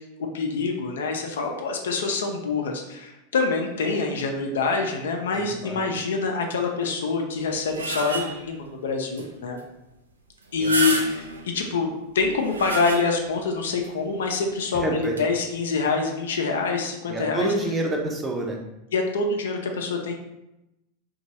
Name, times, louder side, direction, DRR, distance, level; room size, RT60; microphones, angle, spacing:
voice 1, 0.3-9.6 10.5-11.9 12.1-17.5 18.9-20.1, left 4 dB, 70° left, 3 dB, 0.4 m, -26 dB
voice 2, 5.3-5.8 10.6-10.8 14.8-15.2 17.1-18.6, right 2 dB, 20° right, 1 dB, 0.6 m, -27 dB
sound 1, 7.4-8.6 9.2-9.3 9.6-9.7 10.4-11.5 12.2-13.4 13.8-13.9 15.0-15.2, right 2 dB, 85° right, 0.4 m, -30 dB
2.9 x 2.2 x 2.8 m, 0.91 s
figure-of-eight pair, 85°, 0 cm